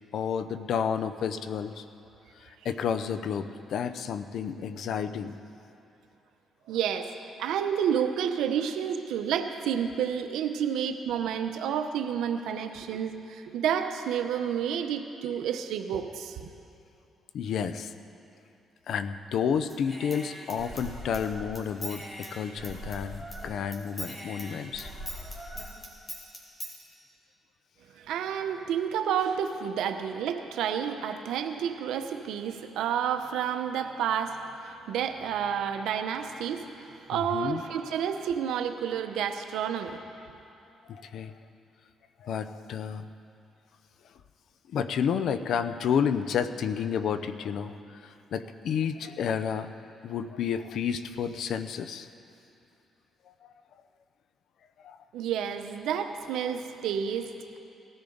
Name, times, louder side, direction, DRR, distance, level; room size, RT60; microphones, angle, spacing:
voice 1, 0.1-1.8 2.4-5.3 17.3-17.9 18.9-24.9 37.1-37.6 40.9-41.3 42.2-43.1 44.7-49.7 50.0-52.1 54.8-55.0, left 7 dB, 70° left, 11 dB, 0.6 m, -31 dB
voice 2, 6.7-7.1 7.4-16.5 27.9-40.0 55.1-57.6, right 8 dB, 85° right, 7 dB, 0.8 m, -30 dB
Human voice / Scissors, 19.7-23.5 23.7-26.7, equal, 25° left, 3.0 m, -41 dB
19.0 x 14.0 x 4.0 m, 2.7 s
cardioid pair, 90°, 0 cm